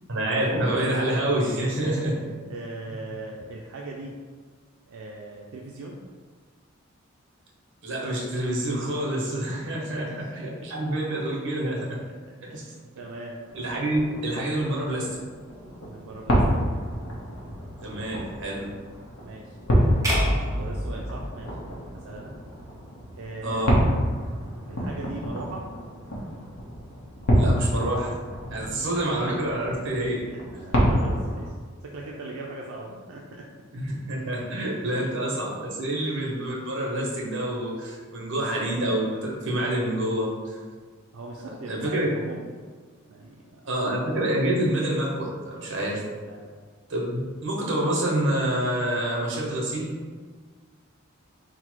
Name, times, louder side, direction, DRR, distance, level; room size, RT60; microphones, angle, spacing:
voice 1, 0.1-2.1 7.8-12.0 12.4-12.7 13.5-15.1 17.8-18.7 23.4-23.7 27.3-28.1 28.5-30.2 33.7-40.3 41.7-42.1 43.7-46.0 46.9-49.9, right 1 dB, 60° right, -3 dB, 1.0 m, -27 dB
voice 2, 1.6-4.2 4.9-6.0 9.5-10.3 10.8-10.9 12.1-13.4 15.8-16.4 19.2-19.6 20.5-21.6 21.9-22.3 23.1-23.7 24.7-25.7 28.5-28.9 30.3-31.6 31.8-33.5 34.8-34.9 41.1-42.6 43.1-43.6 46.1-46.5, right 2 dB, 85° right, -2 dB, 0.4 m, -40 dB
sound 1, 13.5-31.5, equal, 85° left, 0.9 m, -28 dB
sound 2, 20.0-22.3, equal, 15° right, 0.8 m, -28 dB
3.9 x 2.1 x 4.5 m, 1.5 s
head